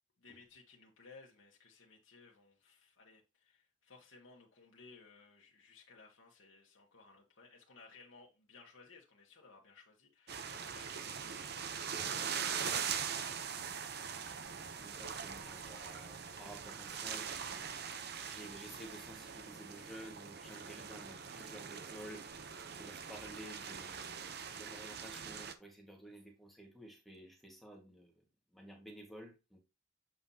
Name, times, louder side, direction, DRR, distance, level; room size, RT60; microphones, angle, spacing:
voice 1, 0.2-14.0, left 4 dB, 75° left, 1.3 m, -60 dB
sound 1, 10.3-25.5, right 7 dB, 50° right, 0.7 m, -42 dB
voice 2, 14.8-17.7 18.3-22.3 22.7-24.2 24.5-28.2 28.5-29.6, right 1 dB, ahead, 1.6 m, -52 dB
7.7 x 5.5 x 2.8 m
head